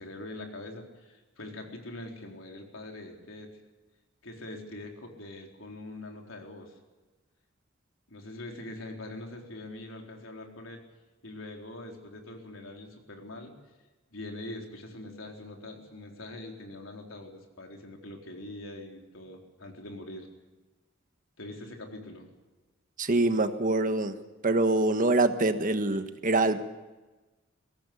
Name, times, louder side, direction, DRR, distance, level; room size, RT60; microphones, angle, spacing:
voice 1, 0.0-3.5 4.2-6.7 8.1-10.8 11.2-13.6 14.1-20.3 21.4-22.3, left 1 dB, 80° left, 2 dB, 4.1 m, -43 dB
voice 2, 23.0-24.1 24.4-26.7, right 2 dB, 45° right, 8 dB, 1.4 m, -25 dB
21.5 x 17.5 x 8.5 m, 1.2 s
head